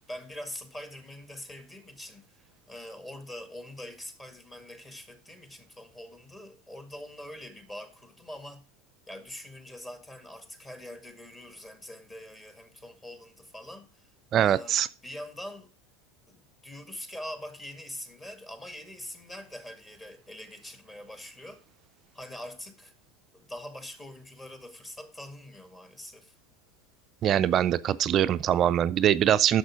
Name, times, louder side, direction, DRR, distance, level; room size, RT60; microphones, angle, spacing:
voice 1, 0.1-8.7 9.1-14.1 14.4-14.8 15.0-15.7 16.3-21.6 22.1-22.9 23.3-26.3, left 1 dB, 15° left, 2.0 m, -43 dB
voice 2, 14.3-14.9 27.2-29.6, right 10 dB, 40° right, 0.4 m, -23 dB
10.5 x 6.8 x 5.1 m
figure-of-eight pair, 80°, 0 cm